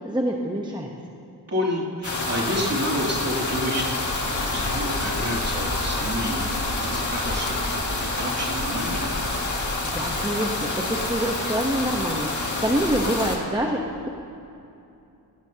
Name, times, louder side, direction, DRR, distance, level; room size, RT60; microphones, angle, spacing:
voice 1, 0.0-0.9 9.8-13.8, right 1 dB, 10° right, 0 dB, 0.9 m, -26 dB
voice 2, 1.5-7.7 8.0-9.0, equal, 35° right, -5 dB, 2.8 m, -29 dB
sound 1, 2.0-13.4, left 2 dB, 45° left, 2.0 m, -27 dB
18.5 x 16.5 x 2.8 m, 2.7 s
wide cardioid pair, 115°, 42 cm